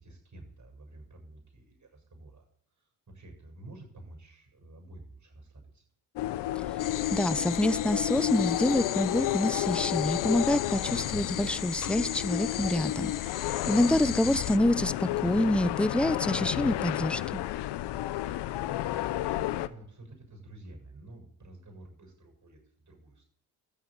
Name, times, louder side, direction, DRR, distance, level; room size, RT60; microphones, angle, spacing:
voice 1, 0.0-2.5 2.8-5.8 13.9-14.3 18.9-23.3, right 2 dB, 45° right, 1 dB, 7.3 m, -50 dB
sound 1, 6.2-19.7, left 14 dB, 85° left, 0.8 m, -31 dB
sound 2, 6.8-14.6, left 12 dB, 50° left, 0.6 m, -38 dB
voice 2, 7.1-13.1 13.4-17.4, left 1 dB, 5° left, 16 dB, 0.8 m, -27 dB
13.5 x 8.2 x 9.2 m, 0.65 s
supercardioid pair, 55°, 40 cm